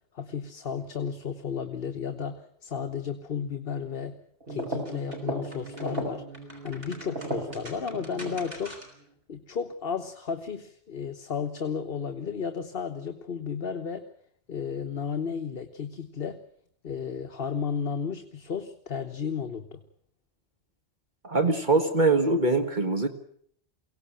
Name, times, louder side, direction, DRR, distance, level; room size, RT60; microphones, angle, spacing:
voice 1, 0.1-4.1 4.5-6.2 6.6-8.8 9.3-14.0 14.5-16.4 16.8-19.8, left 6 dB, 60° left, 7 dB, 1.3 m, -33 dB
sound 1, 4.4-9.0, right 1 dB, 60° right, 5.5 m, -36 dB
voice 2, 21.2-23.1, right 3 dB, 45° right, 6 dB, 1.7 m, -23 dB
23.0 x 17.5 x 8.9 m, 0.65 s
omnidirectional pair, 1.1 m